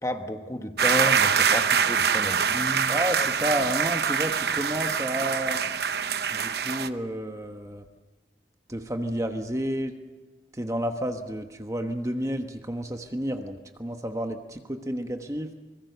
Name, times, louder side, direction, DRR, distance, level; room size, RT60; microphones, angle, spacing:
voice 1, 0.0-3.0, equal, 20° left, 6 dB, 1.3 m, -31 dB
sound 1, 0.8-6.9, right 6 dB, 70° right, 0.8 m, -24 dB
voice 2, 2.9-5.6 6.3-7.8 8.7-10.0 10.5-15.5, right 1 dB, 20° right, 5 dB, 1.2 m, -31 dB
24.0 x 21.5 x 6.8 m, 1.2 s
head